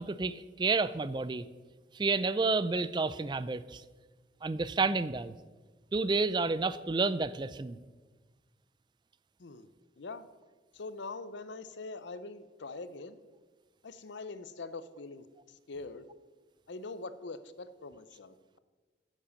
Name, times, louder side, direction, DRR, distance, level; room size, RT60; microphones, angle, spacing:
voice 1, 0.0-1.4 1.9-3.8 4.4-5.3 5.9-7.8, right 3 dB, 25° right, 16 dB, 0.3 m, -30 dB
voice 2, 10.7-13.2 13.8-16.1 16.7-18.6, left 3 dB, 85° left, 13 dB, 0.7 m, -43 dB
10.0 x 7.4 x 6.7 m, 1.4 s
head